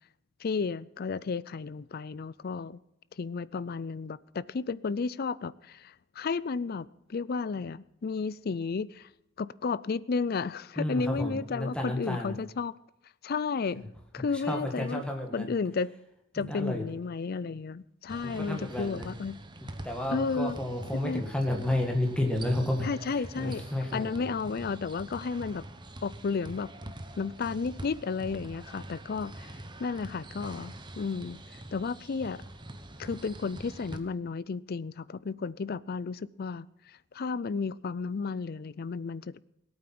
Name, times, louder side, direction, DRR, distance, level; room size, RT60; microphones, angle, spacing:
voice 1, 0.4-2.8 3.2-9.1 9.4-12.7 13.2-13.9 14.1-15.0 15.3-15.9 16.3-19.4 20.1-20.6 21.0-21.2 22.8-23.6 23.9-25.6 26.0-26.7 27.2-29.5 29.8-31.4 31.7-32.4 33.0-36.7 37.1-39.4, left 4 dB, 50° left, 0.4 m, -33 dB
voice 2, 10.8-12.3 14.5-15.5 16.4-16.8 18.2-19.1 19.8-22.9 23.4-24.3, left 1 dB, 5° left, 1.8 m, -31 dB
sound 1, 18.1-34.0, right 1 dB, 20° right, 1.0 m, -45 dB
18.0 x 8.8 x 6.0 m
head